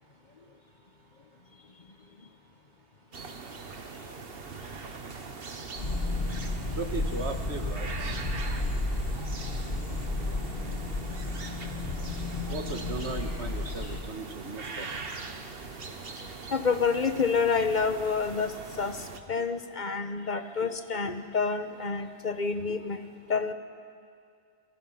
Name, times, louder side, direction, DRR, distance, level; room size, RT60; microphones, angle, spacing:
sound 1, 3.1-19.2, right 4 dB, 60° right, 1.5 m, -42 dB
sound 2, 5.8-14.0, left 2 dB, 65° left, 2.2 m, -32 dB
voice 1, 6.7-8.2 12.5-14.9, right 3 dB, 90° right, 6 dB, 1.9 m, -37 dB
voice 2, 16.5-23.0 23.3-23.5, left 5 dB, 45° left, 9 dB, 1.2 m, -28 dB
28.5 x 22.5 x 5.7 m, 2.3 s
omnidirectional pair, 1.1 m